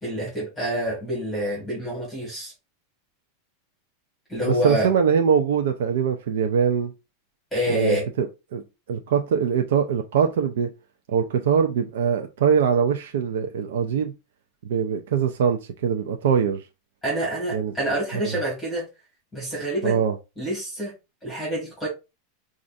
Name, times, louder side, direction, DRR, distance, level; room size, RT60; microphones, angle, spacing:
voice 1, 0.0-2.5 4.3-4.9 7.5-8.0 17.0-18.9 19.3-20.0 20.4-20.9 21.2-21.9, right 1 dB, 5° left, 1.8 m, -27 dB
voice 2, 4.4-6.9 7.7-8.6 8.9-10.7 11.1-14.1 14.6-16.6 17.5-17.7 18.1-18.4 19.8-20.2, right 7 dB, 75° right, 0.4 m, -22 dB
5.1 x 2.4 x 2.5 m
supercardioid pair, 170°, 0 cm